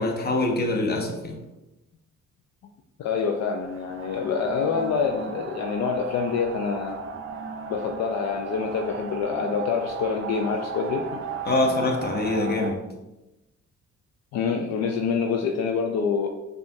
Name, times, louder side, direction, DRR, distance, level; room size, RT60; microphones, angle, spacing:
voice 1, 0.0-1.4 11.5-12.8, left 2 dB, 35° left, 2 dB, 0.7 m, -24 dB
voice 2, 3.0-7.0 7.7-11.2 14.3-16.3, left 5 dB, 60° left, 2 dB, 0.4 m, -26 dB
sound 1, 3.6-12.7, right 5 dB, 45° right, 0.4 m, -36 dB
4.8 x 2.3 x 2.6 m, 1.0 s
cardioid pair, 90°, 30 cm